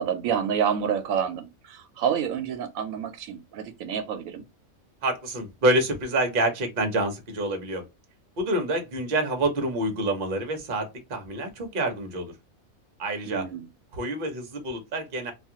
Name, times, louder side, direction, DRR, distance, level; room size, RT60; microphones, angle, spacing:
voice 1, 0.0-4.4 13.3-13.7, right 8 dB, 80° right, 1.0 m, -28 dB
voice 2, 5.0-7.9 8.4-12.3 13.0-13.5 13.9-15.3, right 1 dB, 45° right, 0.8 m, -27 dB
2.5 x 2.3 x 2.7 m
omnidirectional pair, 1.4 m